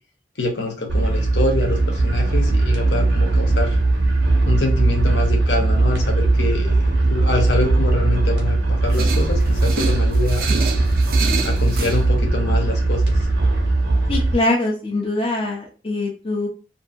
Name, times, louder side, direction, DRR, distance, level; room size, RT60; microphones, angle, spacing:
voice 1, 0.4-3.8 4.5-10.5 11.4-13.3, left 2 dB, 80° left, 1 dB, 0.9 m, -25 dB
sound 1, 0.9-14.3, right 2 dB, 85° right, 1.0 m, -19 dB
sound 2, 8.9-12.0, right 4 dB, 50° right, 0.4 m, -28 dB
voice 2, 14.1-16.5, left 2 dB, 30° left, -1 dB, 0.5 m, -23 dB
2.7 x 2.6 x 2.5 m, 0.36 s
head